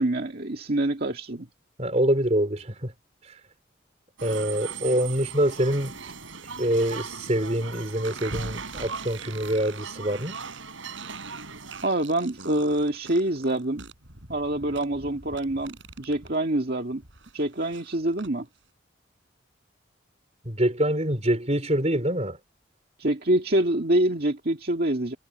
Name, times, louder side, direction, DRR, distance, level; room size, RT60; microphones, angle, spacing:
voice 1, 0.0-1.5 11.8-13.8 14.3-17.0 17.3-18.5 23.0-25.2, right 1 dB, 50° right, 2.0 m, -26 dB
voice 2, 1.8-2.9 3.3-3.4 4.2-6.0 6.6-10.4 20.4-22.4, right 1 dB, 35° right, 4.1 m, -25 dB
sound 1, 4.2-11.9, right 5 dB, 90° right, 5.6 m, -38 dB
sound 2, 8.0-16.3 16.7-18.3, right 5 dB, 70° right, 5.6 m, -46 dB
head